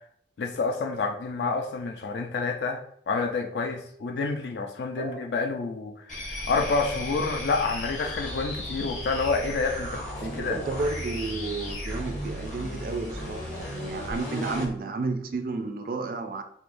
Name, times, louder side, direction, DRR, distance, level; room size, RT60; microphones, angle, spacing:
voice 1, 0.4-2.8 3.1-10.0 10.3-10.6, left 4 dB, 70° left, 3 dB, 0.4 m, -28 dB
sound 1, 6.1-14.7, left 1 dB, 45° left, 1.0 m, -35 dB
voice 2, 10.2-16.4, right 3 dB, 50° right, 7 dB, 0.3 m, -32 dB
4.6 x 2.0 x 2.5 m, 0.66 s
head